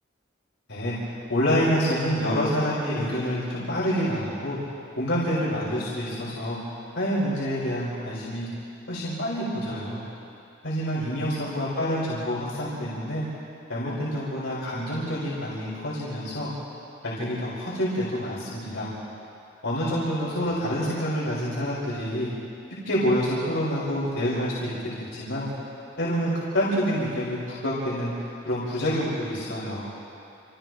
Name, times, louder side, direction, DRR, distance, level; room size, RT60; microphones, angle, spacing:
voice 1, 0.7-4.6 5.0-6.6 6.9-8.5 8.9-10.0 10.6-13.2 13.7-16.5 17.0-18.9 19.6-22.3 22.8-25.5 26.0-29.9, equal, 85° left, -8 dB, 4.9 m, -27 dB
29.5 x 28.0 x 3.2 m, 2.7 s
head